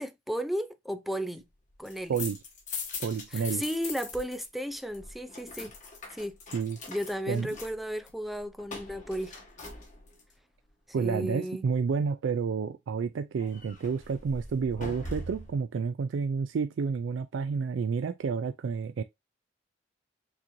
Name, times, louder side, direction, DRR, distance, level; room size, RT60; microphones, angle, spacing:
voice 1, 0.0-1.5 1.8-2.2 3.3-5.7 6.1-6.4 6.9-9.3 11.0-11.7, equal, ahead, 0.4 m, -34 dB
sound 1, 1.7-4.5 4.7-10.3 13.4-15.6, left 3 dB, 45° left, 1.8 m, -42 dB
voice 2, 3.0-3.6 6.5-6.8 7.3-7.5 10.9-19.0, right 5 dB, 70° right, 0.3 m, -30 dB
6.2 x 3.0 x 2.6 m
head